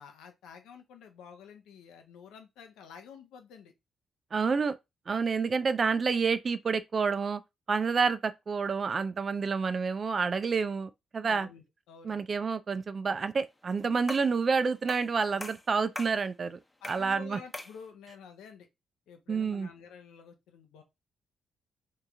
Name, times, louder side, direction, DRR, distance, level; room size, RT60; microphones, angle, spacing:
voice 1, 0.0-3.7 11.2-12.2 16.8-18.7 19.1-20.8, left 6 dB, 75° left, 0.8 m, -50 dB
voice 2, 4.3-4.8 5.1-7.4 7.7-11.5 12.0-16.6 16.9-17.4 19.3-19.7, right 5 dB, 45° right, 0.4 m, -29 dB
sound 1, 14.1-14.4 14.9-15.1 15.4-16.2 16.8-17.1 17.5-17.8, left 2 dB, 15° left, 0.8 m, -41 dB
3.7 x 2.7 x 3.6 m
hypercardioid pair, 40°, 0 cm